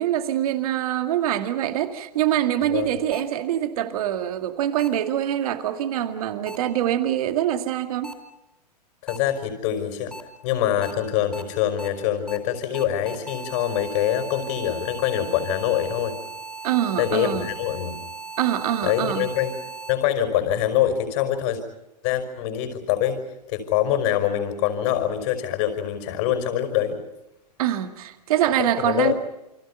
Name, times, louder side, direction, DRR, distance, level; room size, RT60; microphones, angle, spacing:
voice 1, 0.0-8.2 16.6-17.5 18.4-19.3 27.6-29.1, right 11 dB, 60° right, 2.3 m, -24 dB
sound 1, 3.1-3.2 4.8-4.9 6.5-6.6 8.0-8.1 9.1-9.2 10.1-10.2 10.8-10.9 11.3-11.4 11.8-11.9 12.3-12.4 12.7-19.9, right 3 dB, 5° left, 4.2 m, -38 dB
voice 2, 9.0-10.1 10.4-16.2 17.0-18.0 18.8-19.5 19.9-21.6 22.0-23.2 23.5-27.0 28.6-29.1, left 10 dB, 50° left, 5.0 m, -24 dB
29.5 x 25.0 x 5.7 m
hypercardioid pair, 115°, 21 cm